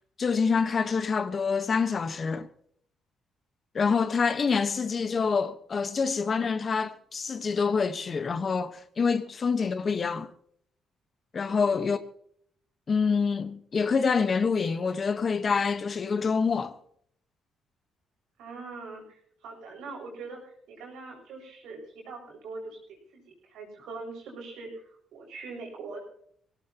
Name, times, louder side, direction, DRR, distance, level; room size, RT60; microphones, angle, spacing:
voice 1, 0.2-2.5 3.7-10.3 11.3-12.0 12.9-16.8, left 5 dB, 40° left, 1.2 m, -26 dB
voice 2, 11.5-11.9 18.4-26.0, right 3 dB, 85° right, 7.3 m, -42 dB
22.0 x 18.0 x 3.0 m
cardioid pair, 90°, 0 cm